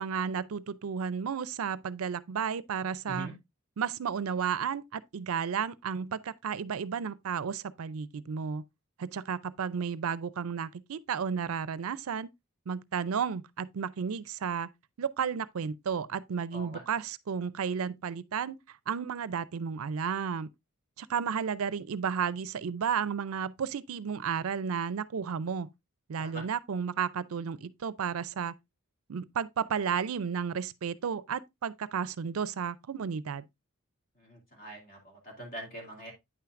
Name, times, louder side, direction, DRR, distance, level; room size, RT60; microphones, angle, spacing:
voice 1, 0.0-3.3 3.8-8.6 9.0-12.3 12.7-14.7 15.0-18.6 18.9-20.5 21.0-25.7 26.1-28.5 29.1-33.4, right 7 dB, 70° right, 0.4 m, -33 dB
voice 2, 34.2-36.1, right 1 dB, 45° left, 2.5 m, -43 dB
9.2 x 5.8 x 2.4 m
head